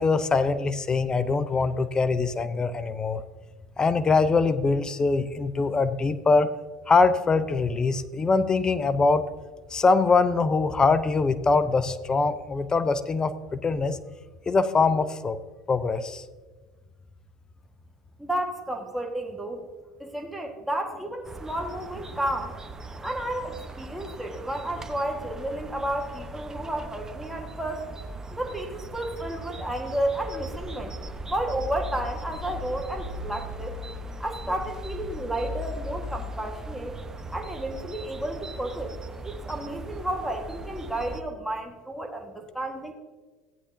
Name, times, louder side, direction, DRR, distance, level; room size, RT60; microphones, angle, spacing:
voice 1, 0.0-3.2 3.8-6.5 6.9-9.2 9.7-14.0 14.5-15.4 15.7-16.2, left 4 dB, 25° left, 13 dB, 0.6 m, -23 dB
voice 2, 18.2-19.6 20.0-22.5 23.0-27.8 28.3-31.0 31.3-33.8 34.2-36.9 37.3-39.0 39.2-42.9, right 1 dB, 5° right, 1 dB, 1.5 m, -32 dB
sound 1, 21.2-41.2, right 1 dB, 20° right, 0.9 m, -38 dB
15.0 x 9.8 x 2.7 m, 1.3 s
hypercardioid pair, 75°, 3 cm